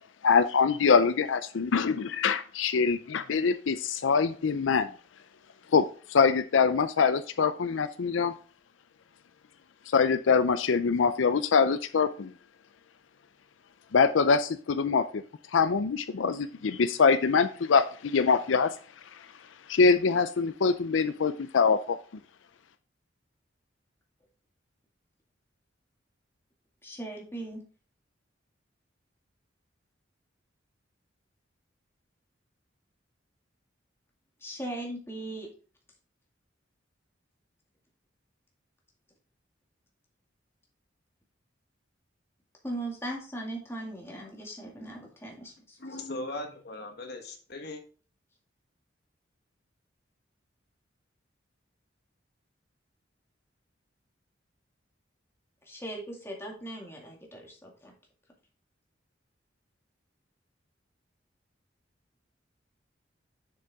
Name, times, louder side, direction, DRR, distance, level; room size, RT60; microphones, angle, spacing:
voice 1, 0.2-4.9 5.7-8.3 9.9-12.3 13.9-15.2 15.5-18.7 19.7-22.0, left 5 dB, 90° left, 0.5 m, -24 dB
voice 2, 26.8-27.6 34.4-35.5 42.6-45.8 55.6-57.9, right 1 dB, 15° left, 2.1 m, -39 dB
voice 3, 45.8-47.8, left 2 dB, 55° left, 1.4 m, -38 dB
6.8 x 6.7 x 3.5 m
head